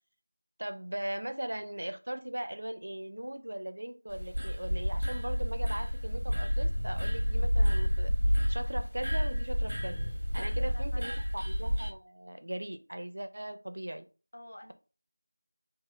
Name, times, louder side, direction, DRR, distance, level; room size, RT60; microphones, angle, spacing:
voice 1, 0.6-8.1 8.5-10.0 10.3-14.0, right 1 dB, 55° right, 9 dB, 0.4 m, -39 dB
sound 1, 4.1-11.9, equal, 90° right, 0.7 m, -29 dB
sound 2, 6.4-8.0 9.5-10.9, equal, 5° left, 0.4 m, -44 dB
voice 2, 10.4-11.2 14.3-14.7, left 1 dB, 50° left, 3 dB, 0.7 m, -48 dB
2.9 x 2.2 x 3.1 m, 0.33 s
figure-of-eight pair, 175°, 0 cm